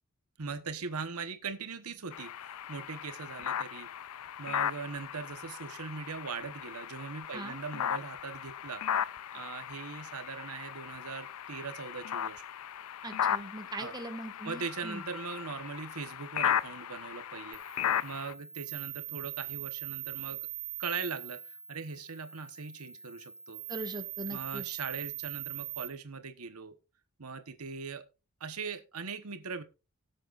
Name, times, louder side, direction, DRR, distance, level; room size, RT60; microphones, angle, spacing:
voice 1, 0.4-3.9 4.4-8.8 9.3-12.4 13.8-13.9 14.4-20.4 20.8-23.6 24.3-26.7 27.2-28.0 28.4-29.6, right 5 dB, 85° right, 9 dB, 1.1 m, -40 dB
sound 1, 2.1-18.3, left 9 dB, 75° left, 0.4 m, -36 dB
voice 2, 13.0-15.0 23.7-24.6, right 1 dB, 20° right, 5 dB, 1.7 m, -40 dB
sound 2, 17.5-25.9, right 13 dB, 60° right, 4.2 m, -42 dB
18.5 x 7.8 x 2.5 m, 0.29 s
head